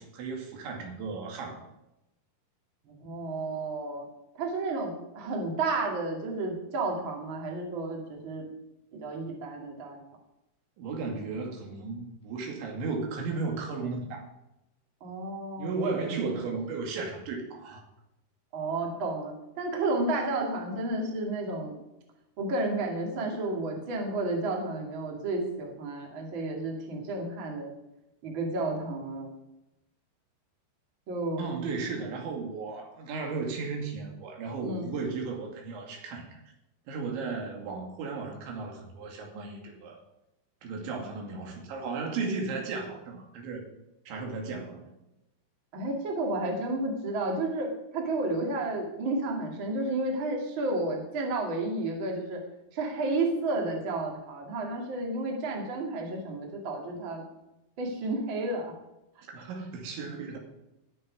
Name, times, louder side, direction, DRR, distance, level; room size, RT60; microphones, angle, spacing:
voice 1, 0.0-1.6 10.8-14.2 15.6-17.8 31.4-36.4 36.9-40.0 40.6-43.7 44.1-44.9 59.3-60.4, right 4 dB, 90° right, 1 dB, 4.7 m, -35 dB
voice 2, 2.8-4.1 4.4-8.5 8.9-10.0 15.0-15.7 18.5-21.8 22.4-27.7 28.2-29.3 31.1-31.4 34.6-34.9 45.7-52.4 52.7-57.2 57.8-58.7, right 2 dB, 35° right, 0 dB, 2.3 m, -31 dB
19.5 x 6.6 x 5.2 m, 0.90 s
omnidirectional pair, 5.1 m